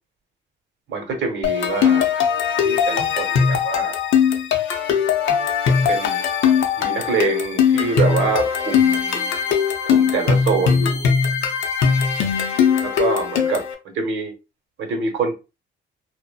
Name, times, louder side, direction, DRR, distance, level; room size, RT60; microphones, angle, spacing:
voice 1, 0.9-2.1 2.6-4.0 5.9-6.2 6.8-9.4 9.9-11.1 12.8-13.6 13.9-14.3 14.8-15.3, right 4 dB, 70° right, 3 dB, 0.9 m, -25 dB
sound 1, 1.4-13.7, left 7 dB, 75° left, 0.6 m, -20 dB
2.8 x 2.1 x 2.3 m, 0.29 s
cardioid pair, 90°, 20 cm